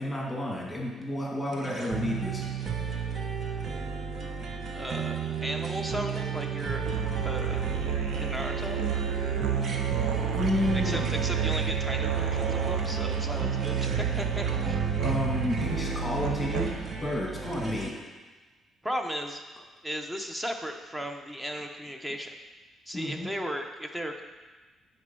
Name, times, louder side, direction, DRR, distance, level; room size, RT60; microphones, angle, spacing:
voice 1, 0.0-2.4 9.7-9.8 10.3-11.1 15.0-18.0 22.9-23.3, left 1 dB, 10° left, -2 dB, 2.3 m, -31 dB
sound 1, 1.5-17.9, right 6 dB, 50° right, 1.0 m, -33 dB
voice 2, 4.7-6.9 7.2-7.6 8.2-8.8 10.7-14.8 18.8-19.4 19.8-22.3 22.9-24.2, equal, 10° right, 4 dB, 1.0 m, -36 dB
Musical instrument, 6.9-17.0, right 7 dB, 85° right, 0.9 m, -30 dB
9.8 x 4.4 x 6.2 m, 1.3 s
cardioid pair, 90°, 0 cm